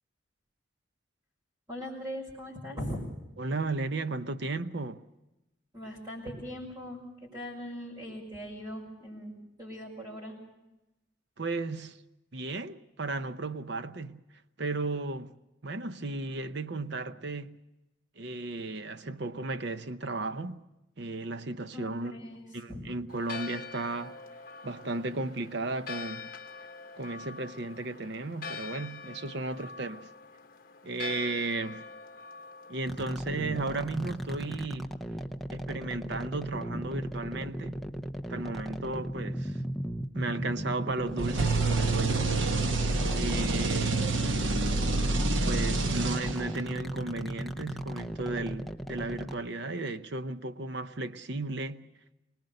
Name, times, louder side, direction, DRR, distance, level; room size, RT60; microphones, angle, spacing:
voice 1, 1.7-3.1 5.7-10.4 21.7-22.4 22.7-22.8 43.1-43.4, equal, 20° right, 5.9 m, -40 dB
voice 2, 3.4-5.0 11.4-12.0 12.3-14.2 14.6-15.4 15.6-17.6 18.2-20.6 21.0-22.2 22.5-24.2 24.6-26.3 27.0-30.1 30.8-31.9 32.7-35.0 35.5-37.8 38.3-39.6 40.1-42.4 43.1-44.1 45.5-51.9, right 2 dB, 60° right, 0.7 m, -35 dB
Church bell, 23.1-34.7, left 4 dB, 45° left, 1.3 m, -45 dB
sound 1, 32.9-49.4, right 1 dB, ahead, 0.7 m, -36 dB
sound 2, 41.2-46.7, right 3 dB, 85° right, 1.1 m, -28 dB
24.0 x 19.5 x 6.6 m
head